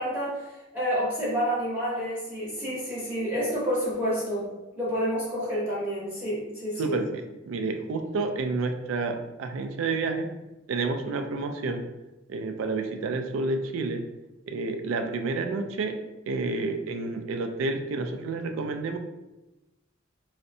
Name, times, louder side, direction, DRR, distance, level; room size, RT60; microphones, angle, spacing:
voice 1, 0.0-4.5 4.8-7.0, equal, 5° right, -9 dB, 0.7 m, -29 dB
voice 2, 6.8-10.3 10.7-11.8 12.3-14.0 14.5-16.0 16.3-19.0, right 3 dB, 80° right, 6 dB, 0.3 m, -29 dB
2.6 x 2.1 x 2.6 m, 1.0 s
head